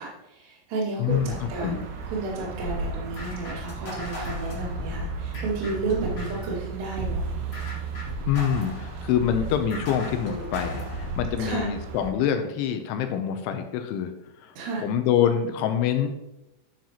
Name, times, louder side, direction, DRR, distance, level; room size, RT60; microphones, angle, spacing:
voice 1, 0.0-7.2 11.4-11.7 14.6-14.8, right 3 dB, 65° right, -4 dB, 4.2 m, -32 dB
voice 2, 1.0-1.8 8.3-14.1 14.4-14.5 14.8-16.1, left 9 dB, 80° left, 7 dB, 2.9 m, -25 dB
sound 1, 1.1-12.1, right 5 dB, 90° right, 3.8 m, -36 dB
sound 2, 2.6-6.5 7.0-11.3, equal, 50° left, 0.8 m, -35 dB
12.0 x 7.4 x 2.9 m, 0.92 s
omnidirectional pair, 5.7 m